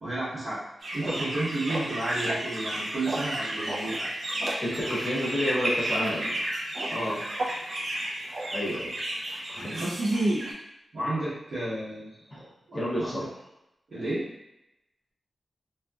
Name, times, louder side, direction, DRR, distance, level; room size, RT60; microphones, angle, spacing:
voice 1, 0.0-0.6 0.9-4.1 6.9-7.2 9.7-10.1 10.9-12.1 12.4-13.2 13.9-14.3, right 2 dB, 65° right, -14 dB, 1.0 m, -32 dB
sound 1, 0.8-10.5, right 1 dB, 45° right, 0.4 m, -31 dB
voice 2, 4.6-6.4 8.5-9.0 9.5-9.8 12.3-12.4 12.7-13.3, equal, 25° left, -6 dB, 0.7 m, -30 dB
2.7 x 2.2 x 2.3 m, 0.89 s
wide cardioid pair, 175°, 0 cm